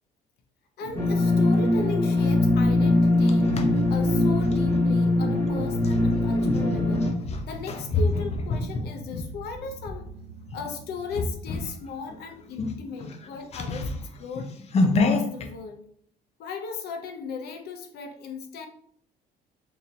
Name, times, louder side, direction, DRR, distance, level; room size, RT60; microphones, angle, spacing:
voice 1, 0.8-3.6 3.9-7.1 7.4-10.1 10.5-14.5 14.8-15.8 16.4-18.7, left 5 dB, 70° left, 5 dB, 0.8 m, -37 dB
sound 1, 0.8-13.0, right 2 dB, 85° right, 0.7 m, -43 dB
sound 2, 1.0-7.1, left 2 dB, 15° left, 1.1 m, -22 dB
sound 3, 2.8-4.8 5.8-10.0 10.5-10.7 11.1-11.8 12.1-12.2 12.5-15.5, left 3 dB, 40° left, 0.5 m, -28 dB
2.9 x 2.8 x 3.9 m, 0.63 s
cardioid pair, 110°, 17 cm